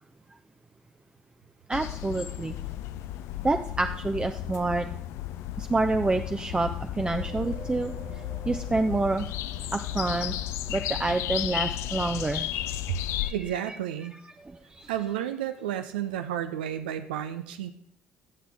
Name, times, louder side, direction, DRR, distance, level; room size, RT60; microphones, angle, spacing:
sound 1, 1.7-13.3, left 13 dB, 60° left, 0.4 m, -34 dB
voice 1, 1.7-2.5 3.4-4.9 5.6-7.9 8.5-9.3 9.7-10.4 10.7-12.5 13.2-13.4 13.7-13.8 14.4-14.9, right 2 dB, 20° right, 6 dB, 0.5 m, -28 dB
sound 2, 7.2-11.8 12.2-12.3, right 4 dB, 45° right, 2.2 m, -50 dB
voice 2, 13.3-14.1 14.9-17.7, right 10 dB, 80° right, 9 dB, 0.4 m, -32 dB
15.0 x 7.3 x 3.5 m, 0.64 s
figure-of-eight pair, 50°, 5 cm